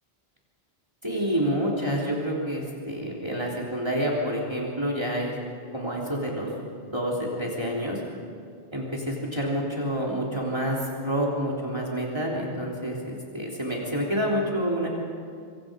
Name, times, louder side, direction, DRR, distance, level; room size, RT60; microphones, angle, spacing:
voice 1, 1.0-5.3 5.7-6.5 6.9-8.0 8.7-14.9, equal, 25° right, -3 dB, 3.5 m, -28 dB
25.5 x 25.0 x 5.3 m, 2.2 s
omnidirectional pair, 1.1 m